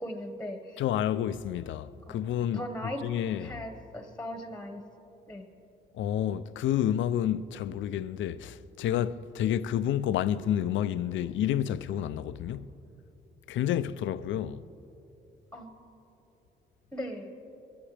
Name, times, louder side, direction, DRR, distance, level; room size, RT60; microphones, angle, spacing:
voice 1, 0.0-0.8 2.1-2.2 2.5-3.0 3.4-4.8 5.3-5.6 9.5-9.6 15.5-15.8 16.9-17.3, equal, 5° left, 1.5 m, -38 dB
voice 2, 0.8-3.6 5.9-12.7 13.5-14.7, left 10 dB, 75° left, 0.5 m, -30 dB
23.0 x 14.0 x 3.4 m
cardioid pair, 90°, 20 cm